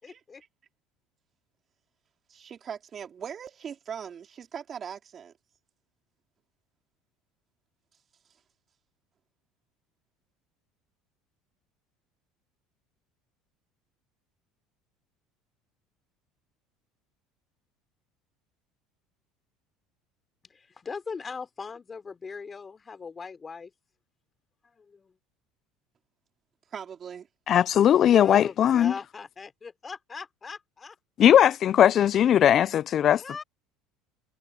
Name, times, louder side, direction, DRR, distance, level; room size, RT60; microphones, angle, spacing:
voice 1, 0.0-0.4 20.5-23.7 24.7-25.1 28.1-31.0 33.1-33.4, left 5 dB, 25° left, 3.3 m, -40 dB
voice 2, 2.3-5.3 26.7-27.3, right 7 dB, 35° right, 3.2 m, -40 dB
voice 3, 27.5-28.9 31.2-33.2, left 10 dB, 45° left, 0.4 m, -19 dB
supercardioid pair, 115°, 0 cm